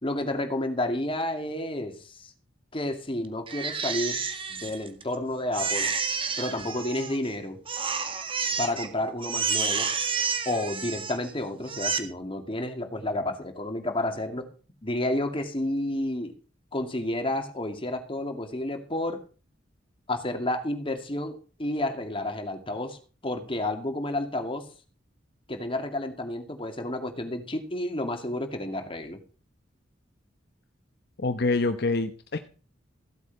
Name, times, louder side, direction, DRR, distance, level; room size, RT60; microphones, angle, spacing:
voice 1, 0.0-2.3 2.7-4.2 4.5-5.9 6.4-7.6 8.6-9.9 10.5-14.5 14.8-16.3 16.7-19.2 20.1-24.7 25.5-29.2, left 1 dB, 30° left, 6 dB, 2.4 m, -30 dB
Crying sobbing, 3.5-5.1 5.5-7.3 7.7-8.9 9.2-11.3 11.6-12.0, right 5 dB, 30° right, 1.8 m, -30 dB
voice 2, 31.2-32.5, left 3 dB, 60° left, 8 dB, 0.9 m, -26 dB
15.5 x 8.3 x 5.3 m, 0.38 s
head